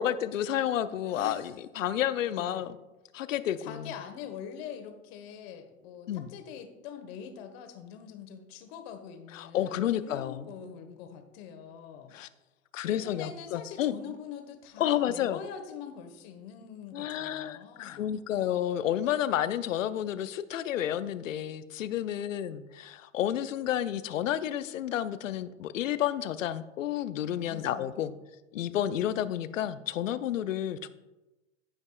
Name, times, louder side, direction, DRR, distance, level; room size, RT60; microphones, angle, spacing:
voice 1, 0.0-2.8 3.1-3.9 6.1-6.3 9.3-10.5 12.1-12.3 12.7-13.9 14.8-15.4 16.9-28.1 28.5-30.9, left 11 dB, 75° left, 14 dB, 0.6 m, -31 dB
voice 2, 1.0-1.5 2.2-2.6 3.6-12.1 12.8-18.1 22.1-22.2 27.4-28.1, left 8 dB, 50° left, 6 dB, 1.3 m, -44 dB
14.5 x 5.3 x 2.4 m, 1.1 s
hypercardioid pair, 100°, 39 cm